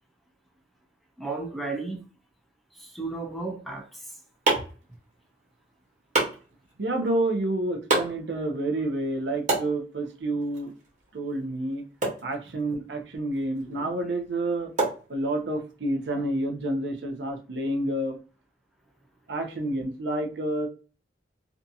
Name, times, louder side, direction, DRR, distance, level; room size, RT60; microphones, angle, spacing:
voice 1, 1.2-2.0 2.7-4.2, right 3 dB, ahead, 0.5 m, -34 dB
sound 1, 3.8-15.7, right 2 dB, 45° right, 1.1 m, -33 dB
voice 2, 6.8-10.7 11.1-11.8 12.2-14.7 15.1-18.2 19.3-20.7, right 1 dB, 80° right, 0.6 m, -29 dB
2.6 x 2.3 x 2.6 m
head